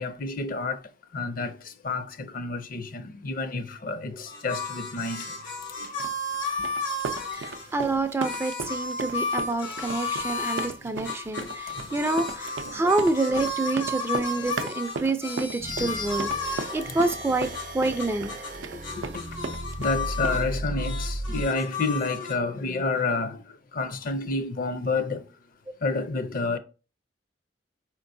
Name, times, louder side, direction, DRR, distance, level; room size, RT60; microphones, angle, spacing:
voice 1, 0.0-5.4 5.8-6.0 10.8-11.1 11.4-12.0 12.6-12.8 15.8-16.0 16.6-16.7 18.5-25.2 25.8-26.6, left 3 dB, 50° left, 0.5 m, -30 dB
sound 1, 4.3-7.7 8.2-10.7 11.0-18.6 18.8-20.5 20.7-22.3, left 3 dB, 90° left, 1.3 m, -33 dB
sound 2, 6.0-20.6, right 4 dB, 85° right, 0.4 m, -37 dB
voice 2, 7.3-16.3 16.7-17.5 17.7-18.3, right 2 dB, 15° right, 0.3 m, -27 dB
sound 3, 15.6-21.5, right 1 dB, 45° right, 0.6 m, -36 dB
4.7 x 4.4 x 2.6 m
head